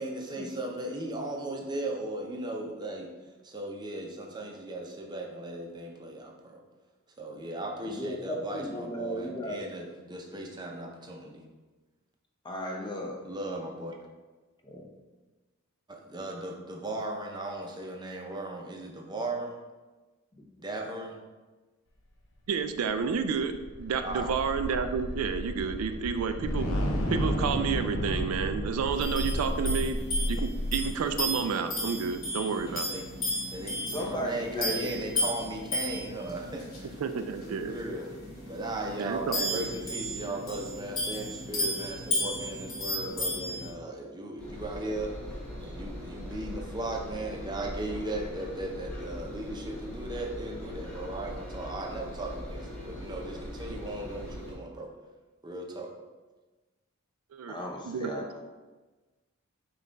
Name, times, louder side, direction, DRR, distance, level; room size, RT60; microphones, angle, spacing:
voice 1, 0.0-3.1 3.4-6.6 7.2-11.4 13.2-14.0 15.9-19.5 20.6-21.2 24.0-24.4 32.6-33.0 33.5-37.1 37.4-38.2 38.5-45.1 45.6-54.9 55.4-55.9, right 1 dB, 20° right, 1 dB, 0.6 m, -37 dB
voice 2, 7.8-9.7 12.4-13.2 14.6-14.9 20.3-20.5 33.9-35.0 57.5-58.4, equal, 20° left, 1 dB, 0.5 m, -36 dB
voice 3, 22.5-26.7 27.1-30.0 30.3-32.9 37.0-37.7 39.0-39.7 57.3-57.5 57.8-58.1, right 6 dB, 80° right, 9 dB, 0.3 m, -30 dB
sound 1, 22.8-31.2, equal, 75° left, 0.7 m, -32 dB
sound 2, 28.9-43.7, left 1 dB, 45° left, 1.3 m, -34 dB
Engine, 44.4-54.5, equal, 5° left, 0.9 m, -41 dB
5.3 x 2.4 x 3.9 m, 1.2 s
head